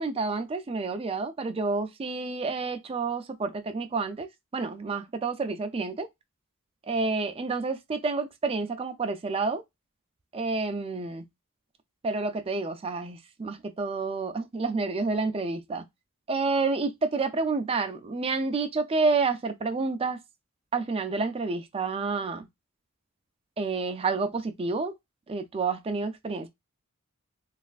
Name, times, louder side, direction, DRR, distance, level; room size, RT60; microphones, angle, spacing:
voice 1, 0.0-6.1 6.9-9.6 10.3-11.3 12.0-15.9 16.3-20.2 20.7-22.5 23.6-25.0 25.3-26.5, right 4 dB, 25° right, 0.3 m, -29 dB
3.2 x 2.4 x 2.3 m
head